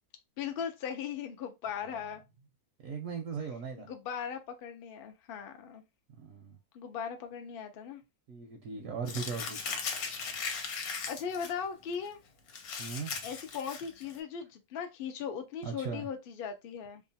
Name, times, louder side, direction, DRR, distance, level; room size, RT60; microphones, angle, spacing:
voice 1, 0.4-2.2 3.8-5.8 6.7-8.0 11.1-12.2 13.2-17.0, left 7 dB, 90° left, 0.5 m, -38 dB
voice 2, 2.8-3.9 6.2-6.6 8.3-9.6 12.8-13.1 15.6-16.1, right 5 dB, 70° right, 0.8 m, -38 dB
Crumpling crinkling, 9.1-11.5 11.9-12.1 12.5-14.2, left 5 dB, 75° left, 1.1 m, -38 dB
2.8 x 2.3 x 2.6 m
omnidirectional pair, 1.7 m